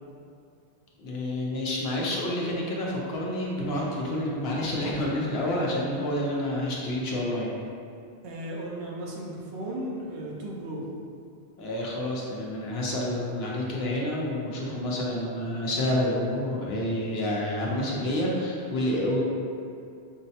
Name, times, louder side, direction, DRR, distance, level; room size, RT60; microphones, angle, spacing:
voice 1, 1.0-7.5 11.6-19.2, left 1 dB, 70° left, -4 dB, 0.9 m, -29 dB
voice 2, 8.2-10.8, right 1 dB, 85° right, -3 dB, 1.0 m, -35 dB
6.0 x 2.1 x 2.8 m, 2.4 s
omnidirectional pair, 1.1 m